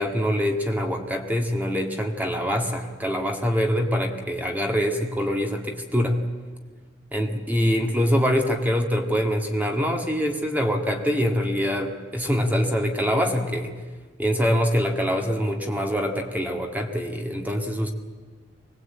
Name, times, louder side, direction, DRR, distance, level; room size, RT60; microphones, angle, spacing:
voice 1, 0.0-6.2 7.1-13.8 14.2-17.9, equal, 10° right, 3 dB, 1.9 m, -24 dB
24.0 x 19.0 x 8.6 m, 1.4 s
head